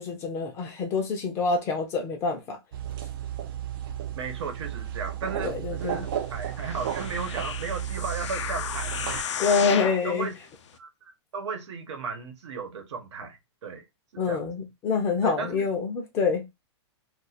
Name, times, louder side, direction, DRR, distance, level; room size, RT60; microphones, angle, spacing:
voice 1, 0.0-2.6 5.4-6.0 9.4-10.3 14.2-16.4, left 4 dB, 20° left, 0.5 m, -26 dB
sound 1, 2.7-9.2, right 10 dB, 50° right, 0.5 m, -34 dB
voice 2, 4.2-9.7 10.0-10.3 10.7-13.8 14.1-14.5 15.2-15.7, right 5 dB, 85° right, 1.0 m, -35 dB
sound 2, 6.5-10.1 10.7-10.8, left 8 dB, 90° left, 0.5 m, -33 dB
2.5 x 2.4 x 4.1 m
hypercardioid pair, 165°, 15 cm